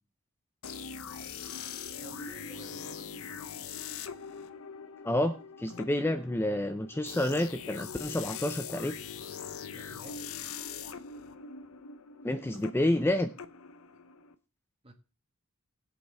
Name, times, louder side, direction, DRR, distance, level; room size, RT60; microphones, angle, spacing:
sound 1, 0.6-14.3, left 6 dB, 65° left, 0.7 m, -42 dB
voice 1, 2.0-3.3 9.7-10.3 14.8-14.9, right 1 dB, 25° right, 1.7 m, -52 dB
voice 2, 5.0-9.0 12.2-13.3, left 1 dB, 10° left, 0.5 m, -29 dB
19.0 x 8.1 x 3.4 m
head